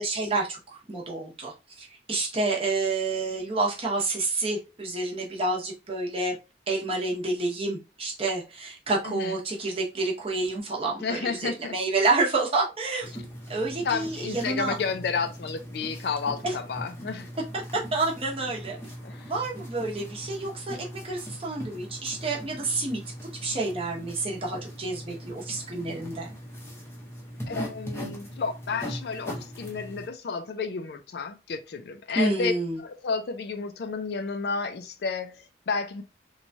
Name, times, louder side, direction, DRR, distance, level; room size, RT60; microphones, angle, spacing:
voice 1, 0.0-1.5 1.8-6.4 6.7-13.1 13.5-14.7 16.4-16.5 17.9-18.8 19.3-20.8 21.0-23.0 23.4-26.3 32.1-32.8, right 3 dB, 30° right, 0.8 m, -29 dB
voice 2, 9.0-9.4 11.0-11.7 13.8-17.3 19.0-19.3 27.5-32.5 32.8-36.0, left 5 dB, 60° left, 0.4 m, -31 dB
sound 1, 13.0-30.1, equal, 15° left, 0.6 m, -40 dB
3.0 x 2.3 x 2.6 m
head